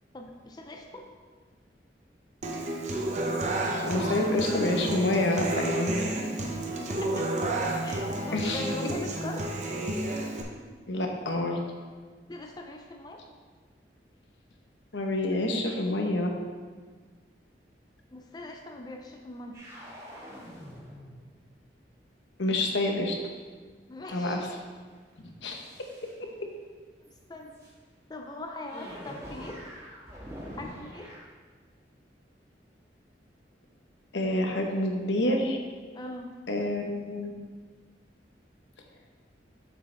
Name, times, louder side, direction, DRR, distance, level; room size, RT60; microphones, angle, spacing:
voice 1, 0.1-1.1 7.0-7.3 7.8-9.6 12.3-13.2 18.1-19.6 23.9-24.5 27.3-27.6 28.1-29.7 30.6-31.1 35.9-36.4, left 2 dB, 25° left, 3 dB, 0.5 m, -41 dB
Human voice / Acoustic guitar, 2.4-10.4, right 1 dB, 40° right, 0.8 m, -31 dB
voice 2, 3.8-5.9 8.3-8.7 10.9-11.6 14.9-16.3 22.4-23.1 24.1-24.5 25.2-25.6 34.1-35.6 36.5-37.3, left 1 dB, 90° left, 2 dB, 1.0 m, -27 dB
sound 1, 19.5-21.3 22.9-23.4 24.2-24.7 25.5-26.1 27.0-27.2 27.4-27.7 28.7-31.2, equal, 20° right, 1.9 m, -45 dB
7.5 x 6.5 x 3.4 m, 1.5 s
head